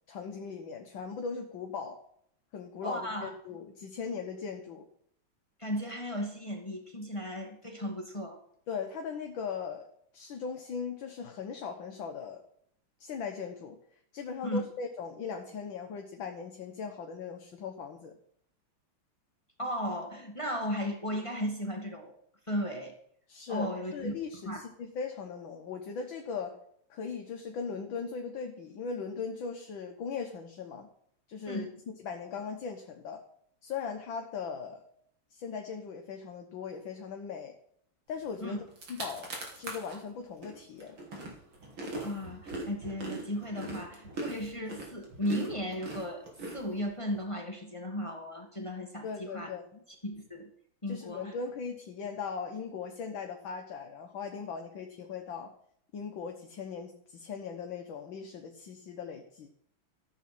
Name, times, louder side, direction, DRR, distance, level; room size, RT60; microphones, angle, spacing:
voice 1, 0.1-2.0 2.5-4.9 8.7-9.9 10.1-12.4 13.0-13.8 14.1-18.1 23.3-26.5 26.9-30.9 31.3-31.7 32.0-33.2 33.6-34.8 35.3-37.5 38.1-38.6 39.0-41.0 49.0-49.6 50.9-55.5 55.9-59.5, left 5 dB, 65° left, 4 dB, 1.9 m, -39 dB
voice 2, 2.8-3.3 5.6-8.4 14.4-14.6 19.6-22.2 22.5-23.0 23.5-24.1 24.5-24.6 31.5-31.7 38.4-38.6 42.0-49.5 50.0-50.5 50.8-51.3, equal, 15° left, 2 dB, 1.8 m, -35 dB
sound 1, 38.4-38.5 38.7-40.0 40.4-47.2, right 2 dB, 70° right, 3.7 m, -41 dB
14.0 x 8.3 x 6.1 m, 0.67 s
omnidirectional pair, 2.4 m